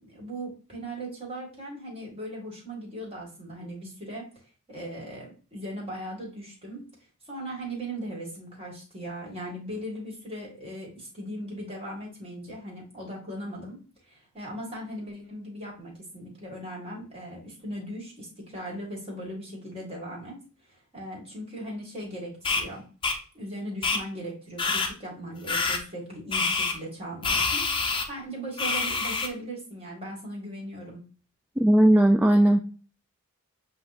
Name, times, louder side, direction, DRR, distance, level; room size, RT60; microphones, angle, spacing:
voice 1, 0.0-4.3 4.7-6.8 7.3-13.8 14.1-20.4 20.7-22.8 23.3-31.0, right 1 dB, 25° right, -3 dB, 1.9 m, -38 dB
sound 1, 22.4-22.6 23.0-23.2 23.8-24.0 24.6-24.9 25.5-25.8 26.3-26.7 27.2-28.0 28.6-29.3, left 4 dB, 25° left, 0.6 m, -26 dB
voice 2, 31.6-32.6, right 1 dB, 10° right, 3 dB, 0.3 m, -18 dB
7.7 x 2.8 x 2.4 m, 0.38 s
head